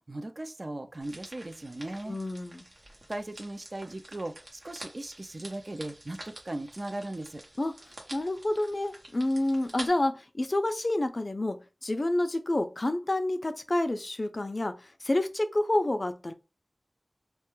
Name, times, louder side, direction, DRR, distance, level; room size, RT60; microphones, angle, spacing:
voice 1, 0.1-2.2 3.1-7.4, right 1 dB, 45° right, 0.3 m, -38 dB
sound 1, 1.0-9.9, right 1 dB, 65° right, 0.8 m, -48 dB
voice 2, 2.1-2.7 7.6-7.8 8.1-16.3, left 1 dB, 45° left, 0.3 m, -29 dB
2.3 x 2.2 x 3.0 m
wide cardioid pair, 70°, 0 cm